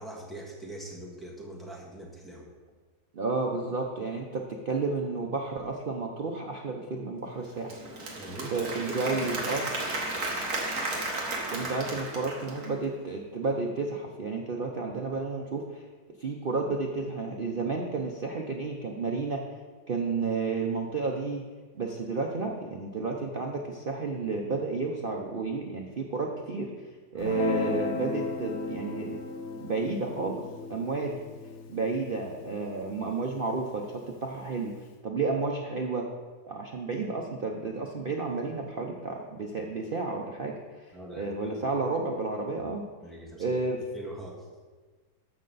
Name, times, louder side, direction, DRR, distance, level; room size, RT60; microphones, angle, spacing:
voice 1, 0.0-2.5 8.2-8.5 11.5-11.9 27.1-27.4 40.9-41.6 43.0-43.5 43.9-44.5, right 1 dB, ahead, -3 dB, 1.6 m, -42 dB
voice 2, 3.1-7.7 8.5-9.7 11.5-15.8 16.2-19.4 19.9-21.4 21.8-26.7 27.1-29.2 29.6-30.4 30.7-31.2 31.7-33.9 34.2-34.7 35.0-36.1 36.5-40.5 41.2-42.9 43.4-43.8, right 3 dB, 70° right, 0 dB, 0.5 m, -31 dB
Applause / Crowd, 7.4-12.8, right 2 dB, 45° right, 1.8 m, -34 dB
Guitar, 27.2-33.8, left 4 dB, 60° left, 0.7 m, -36 dB
14.0 x 5.6 x 4.0 m, 1.4 s
omnidirectional pair, 1.9 m